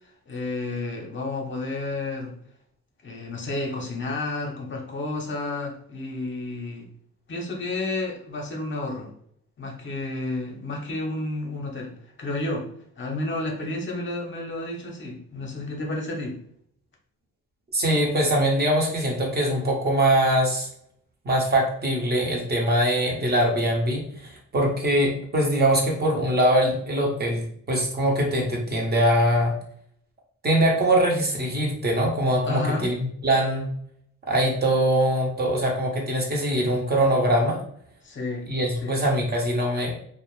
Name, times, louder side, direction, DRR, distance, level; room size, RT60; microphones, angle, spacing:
voice 1, 0.3-2.3 3.0-6.9 7.3-9.1 9.6-12.7 13.0-16.4 32.5-32.9 38.0-38.5 38.8-39.0, left 2 dB, 40° left, 0 dB, 0.7 m, -31 dB
voice 2, 17.7-20.7 21.2-29.5 30.4-33.6 34.2-37.6 38.5-39.9, right 1 dB, 35° right, -1 dB, 0.8 m, -22 dB
2.4 x 2.1 x 3.1 m, 0.66 s
cardioid pair, 90°, 30 cm